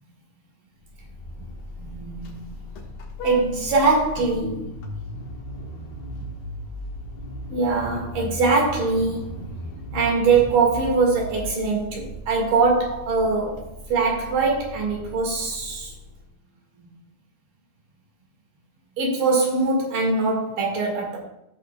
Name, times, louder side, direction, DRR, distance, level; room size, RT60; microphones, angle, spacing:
Vehicle horn car horn honking, 0.8-16.2, equal, 70° left, 3.0 m, -36 dB
voice 1, 1.8-2.6 3.2-4.7 6.2-6.3 7.5-15.9 16.8-16.9 19.0-21.2, right 4 dB, 65° right, -1 dB, 3.3 m, -23 dB
16.0 x 6.5 x 2.3 m, 0.85 s
omnidirectional pair, 4.4 m